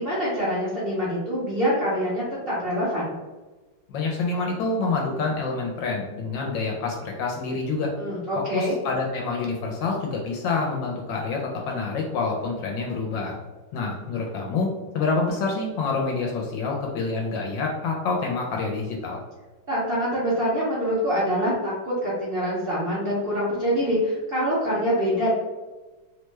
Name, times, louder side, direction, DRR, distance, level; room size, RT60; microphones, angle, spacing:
voice 1, 0.0-3.1 8.0-8.8 19.7-25.3, equal, 65° right, -9 dB, 0.5 m, -25 dB
voice 2, 3.9-7.9 8.5-13.3 13.7-14.7 14.9-19.2, left 4 dB, 75° left, -1 dB, 1.2 m, -27 dB
3.2 x 2.2 x 3.1 m, 1.2 s
omnidirectional pair, 2.1 m